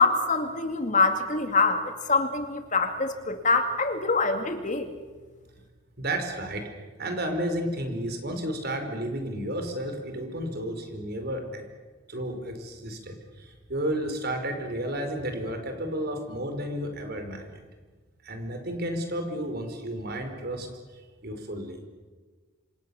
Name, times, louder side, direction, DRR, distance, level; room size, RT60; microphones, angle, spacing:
voice 1, 0.0-4.9, left 4 dB, 40° left, 6 dB, 2.3 m, -24 dB
voice 2, 6.0-6.7 7.0-11.6 12.1-17.6 18.2-20.7 21.2-21.8, right 1 dB, 55° right, 5 dB, 4.9 m, -32 dB
27.5 x 27.0 x 7.2 m, 1.4 s
head